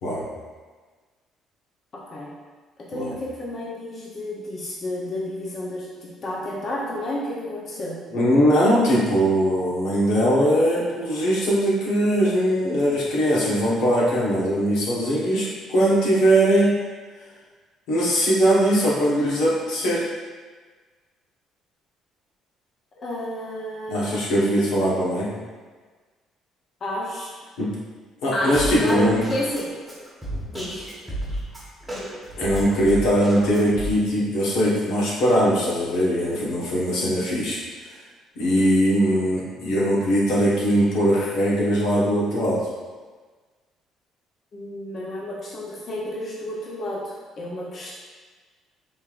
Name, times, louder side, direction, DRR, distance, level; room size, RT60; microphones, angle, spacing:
voice 1, 1.9-2.3 2.9-8.0 23.0-24.4 26.8-27.3 28.3-29.7 30.5-30.9 44.5-47.9, left 1 dB, 40° left, -4 dB, 0.8 m, -31 dB
voice 2, 8.1-16.7 17.9-20.0 23.9-25.3 27.6-27.7 28.2-29.2 32.4-37.6 38.4-42.6, equal, 85° left, -6 dB, 1.2 m, -20 dB
Drum kit, 28.6-33.9, right 1 dB, 5° right, 1.1 m, -33 dB
5.3 x 3.3 x 2.5 m, 1.4 s
cardioid pair, 120°, 0 cm